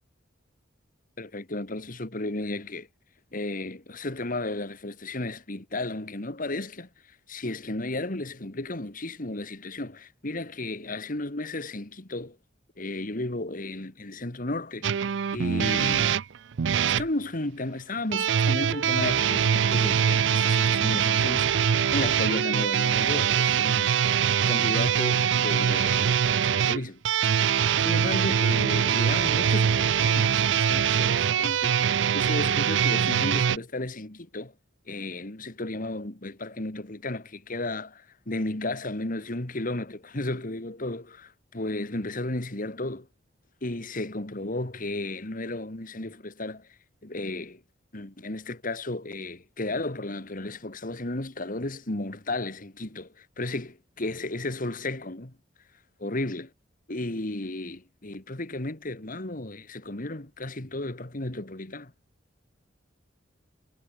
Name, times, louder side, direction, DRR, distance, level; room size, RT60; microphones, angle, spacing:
voice 1, 1.2-2.9 3.3-6.9 7.3-12.4 12.8-14.9 15.3-16.1 17.0-24.0 24.5-27.0 27.8-31.8 32.1-34.5 34.9-43.1 43.6-46.6 47.0-47.6 47.9-55.3 56.0-56.5 56.9-61.9, left 2 dB, 45° left, 2.1 m, -33 dB
sound 1, 14.8-17.1 18.1-33.6, right 8 dB, 70° right, 0.4 m, -23 dB
head